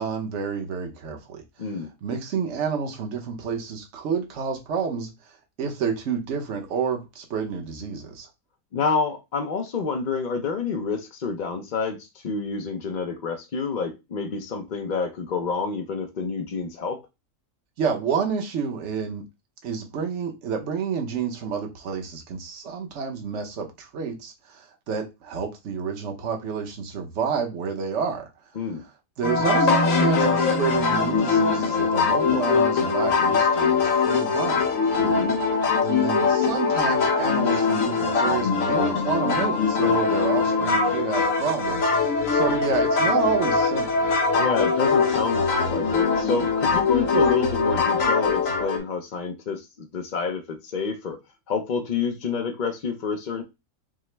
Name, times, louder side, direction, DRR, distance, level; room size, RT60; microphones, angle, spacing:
voice 1, 0.0-5.1 5.6-8.3 17.8-19.3 19.6-28.3 29.2-34.6 35.8-44.0, right 6 dB, 60° right, 1.2 m, -29 dB
voice 2, 1.6-1.9 8.7-17.0 28.6-28.8 35.0-35.3 44.3-51.2 51.5-53.4, left 5 dB, 50° left, 0.5 m, -28 dB
sound 1, 29.2-48.8, left 4 dB, 70° left, 1.4 m, -22 dB
5.6 x 2.1 x 3.2 m
omnidirectional pair, 1.4 m